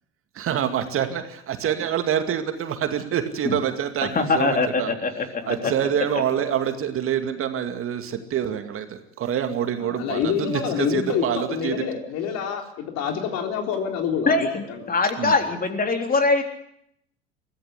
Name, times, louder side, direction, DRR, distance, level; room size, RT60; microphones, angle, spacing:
voice 1, 0.4-4.9 5.5-11.7 15.2-15.3, right 9 dB, 40° right, 7 dB, 2.3 m, -26 dB
voice 2, 4.0-5.7 14.3-16.4, left 3 dB, 25° left, 5 dB, 3.7 m, -23 dB
voice 3, 5.4-5.7 9.8-14.9, left 7 dB, 50° left, 4 dB, 3.6 m, -27 dB
23.0 x 15.5 x 8.2 m, 0.75 s
figure-of-eight pair, 70°, 32 cm